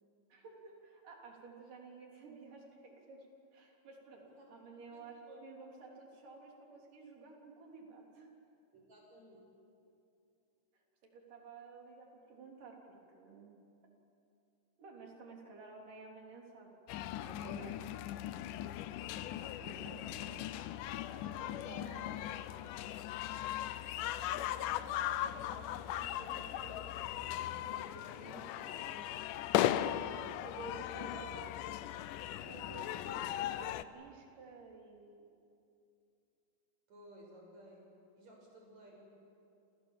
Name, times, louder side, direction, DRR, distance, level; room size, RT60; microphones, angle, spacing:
voice 1, 0.3-3.3 3.5-4.2 4.5-8.3 11.0-13.6 14.8-16.7 17.2-17.8 19.6-20.4 21.4-22.1 24.0-29.0 29.6-31.6 32.5-35.3, right 4 dB, 85° right, 0 dB, 5.3 m, -53 dB
voice 2, 4.1-4.5 4.9-5.5 8.7-9.5 19.4-19.6 20.0-20.2 20.9-22.7 29.4-30.2 32.4-33.2 33.6-33.8 36.9-37.9 38.2-39.0, right 1 dB, 60° right, -1 dB, 8.1 m, -58 dB
sound 1, 16.9-33.8, left 12 dB, 80° left, 2.3 m, -38 dB
29.0 x 28.0 x 7.5 m, 2.6 s
omnidirectional pair, 3.7 m